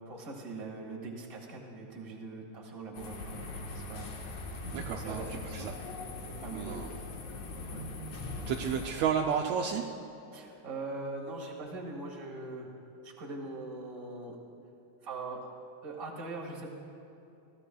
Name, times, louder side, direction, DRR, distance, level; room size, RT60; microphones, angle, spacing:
voice 1, 0.0-4.1 4.9-5.8 6.4-6.9 7.7-7.8 10.3-12.7 13.0-14.4 15.0-15.5 15.8-16.7, right 3 dB, 35° right, -1 dB, 2.0 m, -41 dB
sound 1, 2.9-8.9, left 2 dB, 65° left, 2.4 m, -41 dB
voice 2, 4.7-5.2 5.5-5.7 6.5-6.9 8.5-9.8, right 7 dB, 75° right, 2 dB, 1.8 m, -31 dB
22.0 x 16.0 x 2.3 m, 2.8 s
omnidirectional pair, 3.3 m